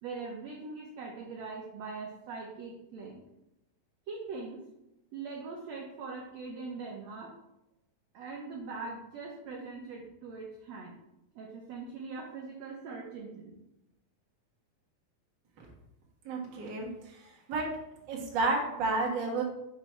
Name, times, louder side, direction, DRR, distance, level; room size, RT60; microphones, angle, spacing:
voice 1, 0.0-3.2 4.1-4.6 5.1-7.3 8.1-10.9 11.3-13.5, right 4 dB, 80° right, -1 dB, 1.5 m, -41 dB
voice 2, 16.2-17.7 18.1-19.4, right 3 dB, 60° right, -2 dB, 1.1 m, -31 dB
5.9 x 3.1 x 5.6 m, 0.88 s
omnidirectional pair, 4.1 m